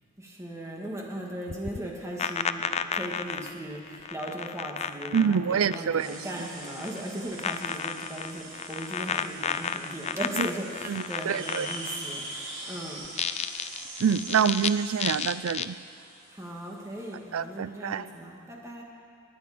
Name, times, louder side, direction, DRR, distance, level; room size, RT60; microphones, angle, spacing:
voice 1, 0.2-2.6 2.9-13.1 16.3-18.8, right 1 dB, 15° right, -2 dB, 1.8 m, -38 dB
sound 1, 1.5-6.2 6.4-7.0 7.4-12.1 13.0-14.7 15.0-15.7, left 7 dB, 30° left, 0.3 m, -32 dB
voice 2, 5.1-6.3 10.4-10.5 10.8-11.7 14.0-15.8 17.3-18.1, right 7 dB, 80° right, 15 dB, 0.4 m, -26 dB
sound 2, 6.0-17.4, right 2 dB, 60° right, 4.5 m, -43 dB
21.0 x 9.6 x 5.1 m, 2.4 s
head